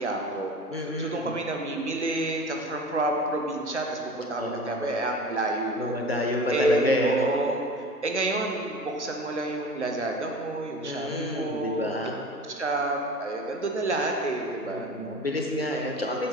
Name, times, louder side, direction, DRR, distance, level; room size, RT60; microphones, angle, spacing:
voice 1, 0.0-0.5 0.8-6.0 6.5-7.6 8.0-12.0 12.5-14.9, right 2 dB, 45° right, 2 dB, 0.8 m, -29 dB
voice 2, 0.7-1.3 4.4-4.9 5.8-7.3 10.8-12.2 14.6-16.3, left 1 dB, 40° left, 1 dB, 0.6 m, -29 dB
7.6 x 5.8 x 3.9 m, 2.4 s
figure-of-eight pair, 150°, 49 cm